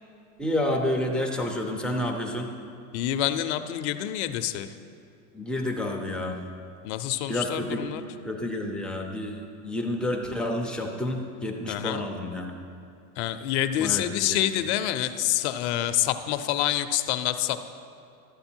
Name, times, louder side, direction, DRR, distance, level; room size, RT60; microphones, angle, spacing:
voice 1, 0.4-2.5 5.3-6.4 7.3-7.9 8.2-12.5 13.8-14.4, left 1 dB, ahead, 0 dB, 0.4 m, -29 dB
voice 2, 2.9-4.7 6.8-8.0 11.7-12.0 13.2-17.7, left 12 dB, 50° left, 10 dB, 0.6 m, -27 dB
12.5 x 7.9 x 4.4 m, 2.5 s
supercardioid pair, 135°, 45 cm